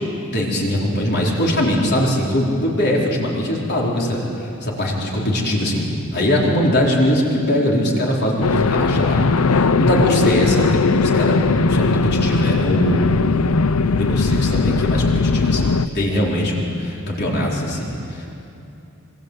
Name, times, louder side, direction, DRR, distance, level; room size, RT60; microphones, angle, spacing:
voice 1, 0.3-5.8 6.1-13.4 13.9-18.3, equal, 50° left, -3 dB, 4.5 m, -21 dB
sound 1, 8.4-15.9, left 4 dB, 85° left, 0.7 m, -18 dB
27.0 x 25.0 x 8.3 m, 2.8 s
head